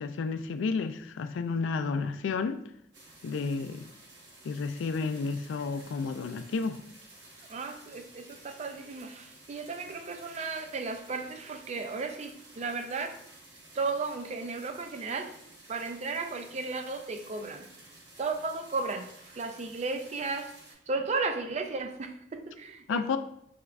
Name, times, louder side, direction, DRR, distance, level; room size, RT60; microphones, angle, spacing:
voice 1, 0.0-2.6 3.2-3.8 4.4-6.8 22.9-23.2, left 4 dB, 90° left, 10 dB, 0.3 m, -31 dB
sound 1, 2.9-20.7, right 2 dB, 60° right, 1.0 m, -53 dB
voice 2, 7.5-13.2 13.7-15.4 15.7-17.7 18.2-20.6 20.9-23.2, right 4 dB, 35° right, 7 dB, 0.4 m, -34 dB
5.0 x 3.3 x 2.3 m, 0.72 s
head